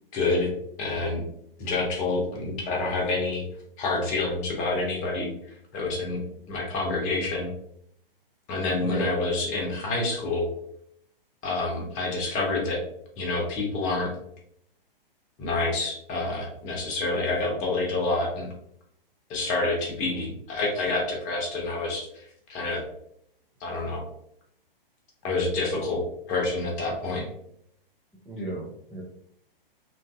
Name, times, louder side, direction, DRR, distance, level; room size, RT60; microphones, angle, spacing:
voice 1, 0.1-0.5 0.8-1.2 1.6-3.4 3.8-5.3 5.7-6.2 6.5-7.5 8.5-10.5 11.4-12.8 13.2-14.1 15.4-18.5 19.3-22.8 23.6-24.0 25.2-27.2, left 3 dB, 25° left, -1 dB, 0.9 m, -28 dB
voice 2, 8.7-9.1 20.0-20.3 28.3-29.0, right 1 dB, ahead, -9 dB, 0.3 m, -34 dB
3.1 x 2.5 x 2.3 m, 0.71 s
hypercardioid pair, 120°, 29 cm